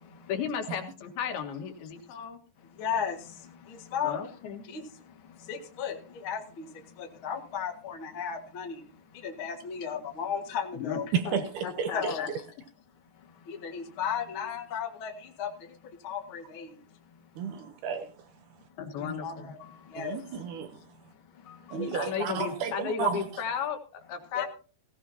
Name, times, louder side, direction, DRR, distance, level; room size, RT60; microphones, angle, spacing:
voice 1, 0.3-2.4 4.0-4.6 10.7-12.3 18.8-19.5 21.9-24.5, left 7 dB, 80° left, 3.5 m, -34 dB
voice 2, 2.8-3.2 3.9-4.2 4.7-4.8 5.5-6.0 6.2-6.6 7.2-8.8 9.2-11.0 11.9-12.3 13.6-15.1 15.4-15.5 16.0-16.7 19.0-19.6 19.9-20.2 21.7-22.1 24.4-24.5, left 7 dB, 45° left, 1.8 m, -34 dB
voice 3, 11.1-12.1 17.4-18.1 20.0-20.7 21.7-23.2, right 7 dB, 70° right, 2.0 m, -32 dB
17.0 x 16.5 x 2.8 m
omnidirectional pair, 4.4 m